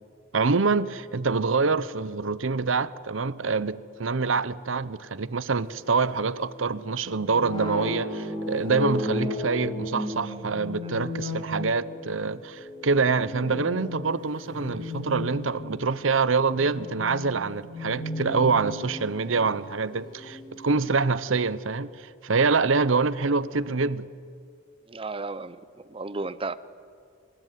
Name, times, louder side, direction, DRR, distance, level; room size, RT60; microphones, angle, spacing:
voice 1, 0.3-24.1, right 4 dB, 80° right, 0.8 m, -25 dB
sound 1, 5.6-20.9, left 1 dB, 25° left, 5.3 m, -35 dB
voice 2, 24.9-25.6 25.9-26.6, right 3 dB, 30° right, 0.8 m, -33 dB
25.5 x 22.0 x 9.3 m
head